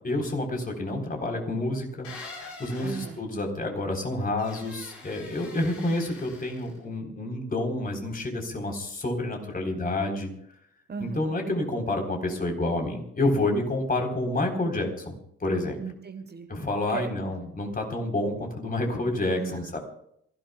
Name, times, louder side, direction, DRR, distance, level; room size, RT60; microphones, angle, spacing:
voice 1, 0.0-2.1 2.3-10.3 11.0-15.1 15.4-15.8 16.5-19.8, left 2 dB, 25° left, 2 dB, 3.9 m, -29 dB
sound 1, 2.0-3.2 4.4-6.8, left 3 dB, 70° left, 5.2 m, -44 dB
voice 2, 2.8-3.2 10.9-11.3 15.8-16.5 16.9-17.5 19.4-19.8, right 5 dB, 30° right, 8 dB, 1.4 m, -37 dB
27.5 x 16.0 x 2.3 m, 0.71 s
figure-of-eight pair, 45°, 32 cm